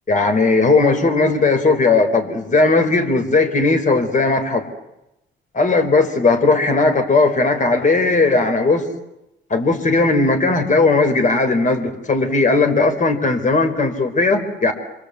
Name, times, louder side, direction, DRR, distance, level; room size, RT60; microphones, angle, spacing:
voice 1, 0.1-4.6 5.5-8.8 9.5-14.7, left 3 dB, 40° left, 8 dB, 4.5 m, -17 dB
27.5 x 23.5 x 8.3 m, 0.89 s
cardioid pair, 90°, 20 cm